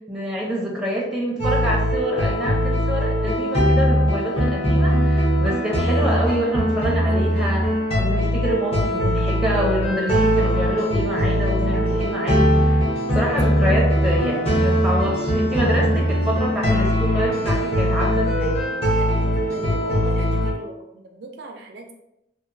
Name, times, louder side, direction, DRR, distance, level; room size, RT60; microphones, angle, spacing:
voice 1, 0.1-7.6 8.0-12.8 13.1-18.6, equal, 5° right, -4 dB, 0.6 m, -26 dB
sound 1, 1.4-20.5, equal, 35° left, 0.7 m, -20 dB
voice 2, 18.9-21.9, right 2 dB, 70° right, 3 dB, 0.4 m, -38 dB
2.8 x 2.4 x 2.6 m, 0.85 s
head